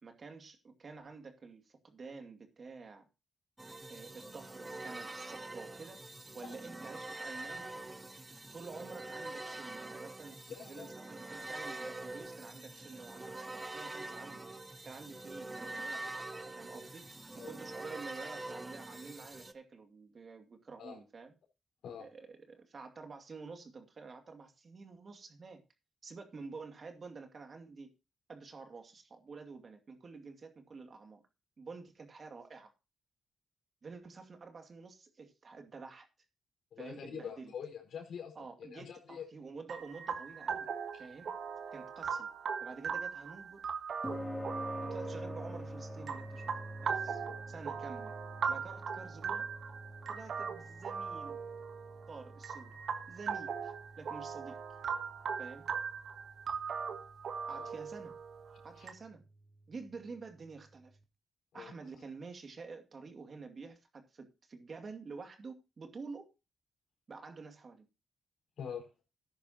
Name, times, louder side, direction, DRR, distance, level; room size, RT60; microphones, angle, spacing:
voice 1, 0.0-3.1 3.9-6.0 6.3-7.9 8.5-14.4 14.8-16.0 16.6-17.1 17.4-21.3 22.0-25.6 26.0-27.9 28.3-31.2 31.6-32.7 33.8-36.1 36.8-37.5 38.4-40.7 41.0-41.3 41.7-42.3 42.6-43.7 44.8-46.5 46.8-48.2 48.5-49.5 50.1-51.5 52.1-52.8 53.1-54.6 55.4-55.7 57.5-58.2 58.6-59.2 59.7-60.9 61.5-66.3 67.1-67.9, right 4 dB, 50° right, 5 dB, 2.4 m, -49 dB
sound 1, 3.6-19.5, right 2 dB, 20° right, 1.1 m, -45 dB
voice 2, 10.5-10.9 15.9-16.2 17.3-17.6 20.8-21.0 21.8-22.1 36.7-39.3 40.9-41.0 47.2-47.4 57.5-57.7 58.7-58.9 61.5-61.7 68.6-68.9, left 7 dB, 80° left, 1 dB, 4.6 m, -45 dB
sound 2, 39.7-58.9, right 6 dB, 65° right, 1.5 m, -40 dB
sound 3, 44.0-60.5, equal, ahead, 2.7 m, -47 dB
14.0 x 10.5 x 2.9 m, 0.28 s
cardioid pair, 65°, 0 cm